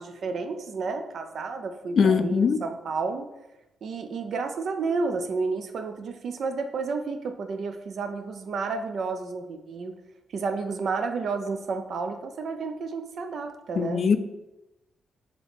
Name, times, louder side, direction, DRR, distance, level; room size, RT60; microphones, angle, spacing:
voice 1, 0.0-3.3 3.8-9.9 10.3-14.1, right 4 dB, 70° right, 7 dB, 0.4 m, -31 dB
voice 2, 2.0-2.6 13.8-14.2, left 6 dB, 60° left, 10 dB, 0.3 m, -21 dB
3.5 x 2.9 x 3.9 m, 0.95 s
supercardioid pair, 60°, 0 cm